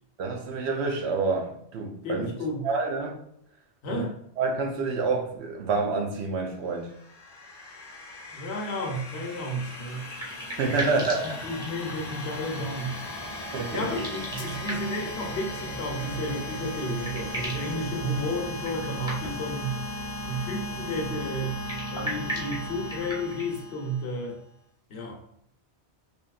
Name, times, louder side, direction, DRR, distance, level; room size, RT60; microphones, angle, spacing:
voice 1, 0.2-2.3 2.6-3.2 3.9-4.1 4.4-6.9 10.4-11.5 13.5-13.9, right 4 dB, 75° right, 0.8 m, -28 dB
voice 2, 2.0-2.7 3.8-4.1 8.3-10.1 10.8-10.9 11.4-13.0 13.7-19.8 20.2-21.6 21.9-24.4 24.9-25.2, equal, 70° left, 0.9 m, -32 dB
sound 1, 6.7-24.3, left 1 dB, 45° left, 0.6 m, -37 dB
sound 2, 9.7-12.2 13.8-15.1 16.4-16.5 16.8-17.7 18.6-19.5 21.5-23.6, equal, 5° right, 0.8 m, -37 dB
3.4 x 2.7 x 2.3 m
omnidirectional pair, 1.1 m